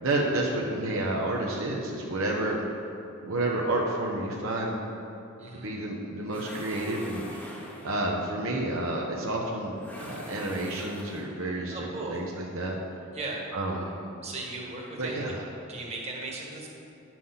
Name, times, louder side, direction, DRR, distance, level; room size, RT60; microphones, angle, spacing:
voice 1, 0.0-2.6 3.2-4.8 5.5-7.5 7.8-12.8 13.5-13.9 15.0-15.4, right 1 dB, 70° right, -2 dB, 1.0 m, -30 dB
sound 1, 6.3-8.2 9.7-11.5, equal, 10° left, 0.9 m, -43 dB
voice 2, 11.7-12.2 13.1-13.4 14.2-15.3 15.7-16.7, right 2 dB, 30° right, -2 dB, 1.5 m, -37 dB
9.5 x 6.0 x 5.7 m, 2.7 s
head